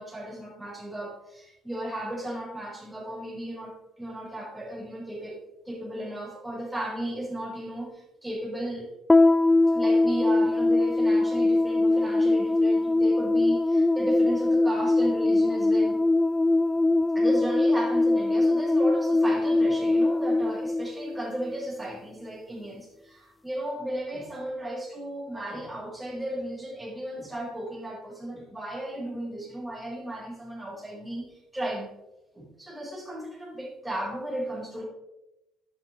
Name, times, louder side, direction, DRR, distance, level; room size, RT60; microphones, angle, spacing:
voice 1, 0.0-5.4 5.6-8.9 9.7-16.0 17.1-31.9 32.3-34.8, right 1 dB, 5° right, -5 dB, 4.6 m, -35 dB
sound 1, 9.1-21.6, left 2 dB, 10° left, 0.4 m, -22 dB
11.5 x 10.5 x 3.2 m, 0.93 s
cardioid pair, 140°, 0 cm